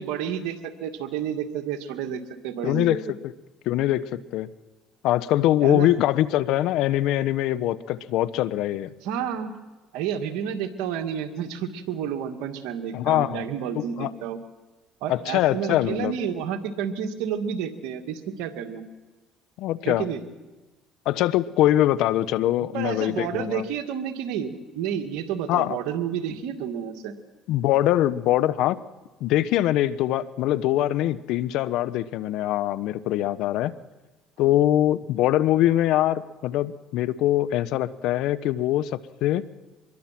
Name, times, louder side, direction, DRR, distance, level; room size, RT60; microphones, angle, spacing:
voice 1, 0.0-3.0 5.6-5.9 9.0-9.5 9.9-14.4 15.0-18.8 19.8-20.2 22.7-27.1 34.4-34.5, right 8 dB, 80° right, 5 dB, 2.3 m, -30 dB
voice 2, 2.6-3.3 3.6-4.5 5.0-8.9 12.9-13.4 13.7-14.1 15.1-16.1 19.6-20.1 21.0-23.6 25.5-25.8 27.5-28.8 29.2-33.7 34.4-39.4, left 13 dB, 75° left, 15 dB, 1.0 m, -23 dB
25.0 x 22.0 x 6.1 m, 1.2 s
supercardioid pair, 80°, 0 cm